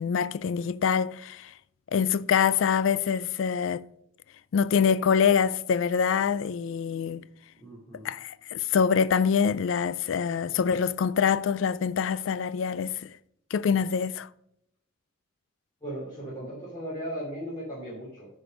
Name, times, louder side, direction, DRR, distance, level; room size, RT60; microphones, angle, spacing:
voice 1, 0.0-1.5 1.9-3.8 4.5-7.2 8.0-12.9 13.5-14.3, left 7 dB, 70° left, 0.3 m, -25 dB
voice 2, 7.6-8.1 13.7-13.8 15.8-18.3, equal, 20° left, 2.7 m, -37 dB
10.0 x 5.1 x 5.2 m
head